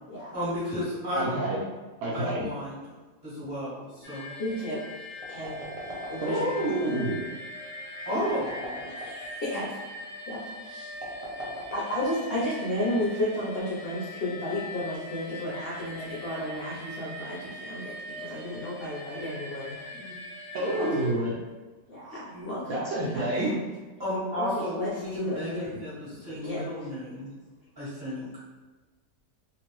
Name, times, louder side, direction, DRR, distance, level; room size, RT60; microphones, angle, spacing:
voice 1, 0.3-1.3 2.1-2.8 3.2-4.3 8.0-8.8 19.9-20.2 22.3-22.7 23.4-23.5 24.0-27.3 27.8-28.3, equal, 15° right, -12 dB, 1.3 m, -33 dB
voice 2, 1.1-1.7 2.0-2.4 6.2-7.3 20.5-21.4 22.7-23.5, right 1 dB, 70° right, -5 dB, 0.9 m, -28 dB
Long Very Annoying Siren or Alarm, 4.0-21.1, left 1 dB, 25° left, 0.9 m, -42 dB
voice 3, 4.4-4.8 5.3-6.6 8.9-9.7 10.3-10.9 11.7-19.8 20.6-20.9 21.9-22.8 23.1-23.5 24.3-25.7 26.4-26.6, left 1 dB, 60° left, -7 dB, 0.6 m, -33 dB
sound 1, 5.2-6.6 8.2-9.3 10.9-12.5, equal, 45° right, 0.4 m, -40 dB
2.8 x 2.5 x 3.0 m, 1.3 s
omnidirectional pair, 1.8 m